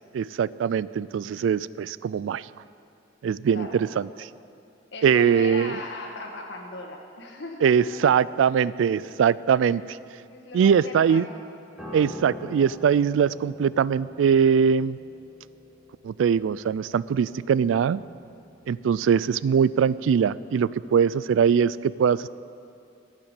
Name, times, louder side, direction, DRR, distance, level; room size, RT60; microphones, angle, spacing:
voice 1, 0.1-2.5 3.2-4.3 5.0-5.8 7.6-10.0 10.5-11.3 11.9-15.0 16.0-18.0 18.7-22.3, right 7 dB, 80° right, 19 dB, 0.3 m, -22 dB
voice 2, 3.5-3.8 4.9-8.1 10.3-11.4 19.0-19.3, left 2 dB, 65° left, 1 dB, 1.8 m, -38 dB
Piano, 11.8-21.2 21.4-21.7, left 2 dB, 5° right, 2.3 m, -45 dB
11.5 x 7.4 x 9.9 m, 2.6 s
head